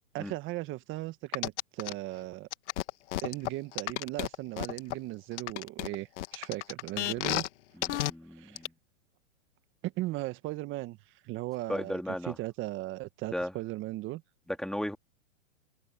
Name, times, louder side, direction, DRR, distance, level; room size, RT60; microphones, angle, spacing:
voice 1, 0.1-2.5 3.2-7.4 8.3-8.6 9.8-11.0 11.2-14.2, right 18 dB, 30° right, 1.6 m, -37 dB
sound 1, 1.3-1.9 2.5-4.9 5.4-7.5 7.8-8.1 8.6-8.7, left 15 dB, 60° left, 1.8 m, -32 dB
voice 2, 7.8-8.7 11.7-12.4 13.3-13.5 14.5-15.0, left 1 dB, ahead, 2.5 m, -35 dB
hypercardioid pair, 135°, 39 cm